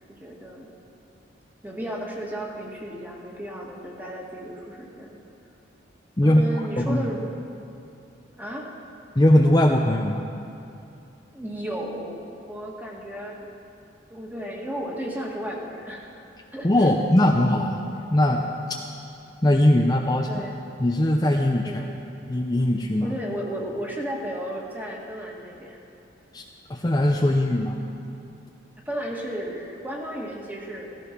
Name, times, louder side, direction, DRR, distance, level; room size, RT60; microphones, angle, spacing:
voice 1, 0.2-0.7 1.6-5.2 6.2-7.6 8.4-8.7 11.3-13.5 14.1-16.2 16.5-17.0 20.3-20.5 21.6-21.9 23.0-25.8 28.9-30.9, equal, 10° right, -2 dB, 1.9 m, -34 dB
voice 2, 6.2-7.0 9.2-10.2 16.6-17.8 18.1-18.5 19.4-20.5 20.8-21.9 22.3-23.1 26.3-26.4 26.7-27.8, left 1 dB, 20° left, 1 dB, 0.7 m, -20 dB
16.0 x 15.0 x 6.0 m, 2.7 s
head